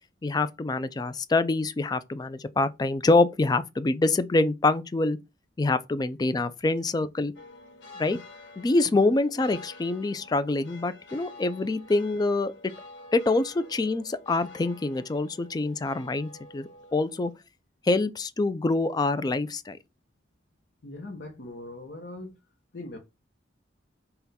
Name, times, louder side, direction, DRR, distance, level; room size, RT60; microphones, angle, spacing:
voice 1, 0.2-5.2 5.6-7.3 8.0-8.2 8.6-12.5 13.1-17.3 17.8-19.8, left 2 dB, 20° left, 0.3 m, -25 dB
sound 1, 7.3-17.3, left 2 dB, 85° left, 1.2 m, -49 dB
voice 2, 20.8-22.4 22.7-23.0, left 2 dB, 65° left, 0.9 m, -40 dB
5.7 x 2.2 x 4.1 m
head